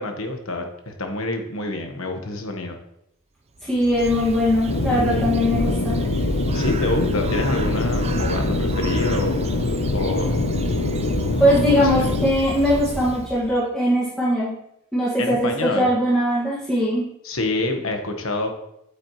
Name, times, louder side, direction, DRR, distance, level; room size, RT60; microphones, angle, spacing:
voice 1, 0.0-2.8 6.5-9.5 9.9-10.4 12.0-12.1 15.2-15.9 17.2-18.5, left 2 dB, 70° left, 4 dB, 1.3 m, -27 dB
voice 2, 3.6-6.0 11.4-14.5 14.9-17.0, equal, 5° left, -9 dB, 1.9 m, -20 dB
Bird, 3.6-13.6, right 2 dB, 30° right, 0.5 m, -31 dB
sound 1, 4.7-12.3, left 2 dB, 90° left, 0.7 m, -24 dB
8.7 x 8.6 x 3.1 m, 0.78 s
head